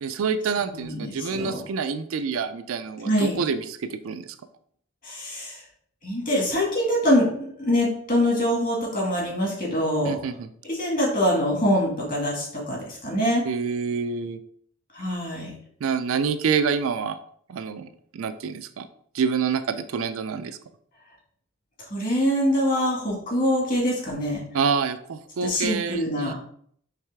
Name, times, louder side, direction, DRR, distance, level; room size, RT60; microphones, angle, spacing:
voice 1, 0.0-4.3 10.0-10.5 13.5-14.4 15.8-17.2 17.5-18.9 19.1-20.6 24.5-26.3, right 5 dB, 80° right, 10 dB, 0.4 m, -27 dB
voice 2, 0.7-1.6 3.0-3.4 5.0-5.6 6.0-10.2 10.6-13.4 14.9-15.5 21.9-24.4 25.4-26.3, equal, 40° left, -2 dB, 1.8 m, -24 dB
4.8 x 3.2 x 3.4 m, 0.63 s
head